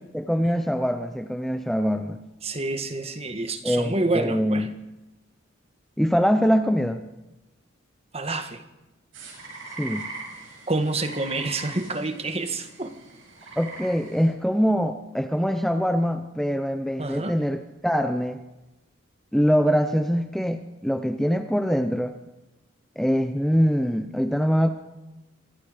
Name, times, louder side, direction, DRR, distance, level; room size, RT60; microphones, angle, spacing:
voice 1, 0.1-2.2 3.6-4.7 6.0-7.0 9.8-10.1 13.6-18.4 19.3-22.2 23.0-24.7, equal, ahead, 6 dB, 0.8 m, -23 dB
voice 2, 2.4-4.7 8.1-8.6 10.7-12.9 17.0-17.4, right 2 dB, 30° right, 8 dB, 1.5 m, -28 dB
sound 1, 9.1-14.3, right 3 dB, 75° right, 6.9 m, -41 dB
26.5 x 21.5 x 5.1 m, 1.0 s
head